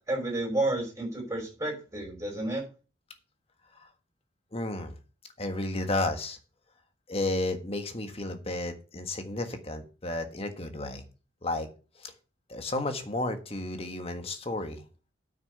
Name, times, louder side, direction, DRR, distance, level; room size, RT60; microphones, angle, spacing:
voice 1, 0.1-2.6, right 2 dB, 15° right, 0 dB, 5.5 m, -31 dB
voice 2, 4.5-4.9 5.4-6.4 7.1-11.0 11.4-11.7 12.0-12.1 12.5-14.8, left 2 dB, 30° left, 7 dB, 1.5 m, -32 dB
8.9 x 6.4 x 6.8 m, 0.34 s
head